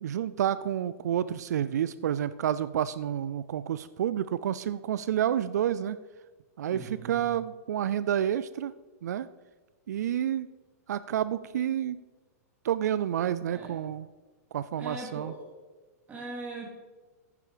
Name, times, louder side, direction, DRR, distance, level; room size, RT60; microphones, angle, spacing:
voice 1, 0.0-6.0 6.6-8.7 9.0-9.3 9.9-10.5 10.9-12.0 12.6-14.1 14.5-15.3, right 10 dB, 85° right, 15 dB, 0.4 m, -29 dB
voice 2, 6.7-7.1 13.5-13.8 14.8-15.4 16.1-16.7, right 2 dB, 20° right, -1 dB, 3.0 m, -40 dB
10.5 x 9.7 x 5.0 m, 1.2 s
hypercardioid pair, 145°, 9 cm